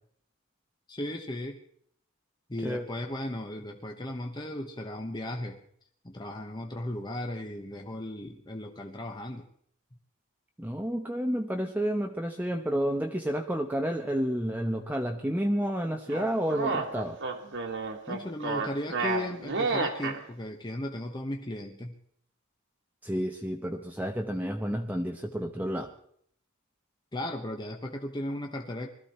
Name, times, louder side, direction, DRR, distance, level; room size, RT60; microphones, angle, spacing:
voice 1, 0.9-1.6 2.5-5.6 6.0-9.4 18.1-21.9 27.1-28.9, left 1 dB, 20° left, 2 dB, 1.1 m, -36 dB
voice 2, 10.6-17.2 23.0-25.9, equal, 10° right, 2 dB, 0.9 m, -30 dB
sound 1, 16.1-20.2, right 4 dB, 60° right, 2.0 m, -31 dB
21.0 x 14.0 x 4.3 m, 0.65 s
head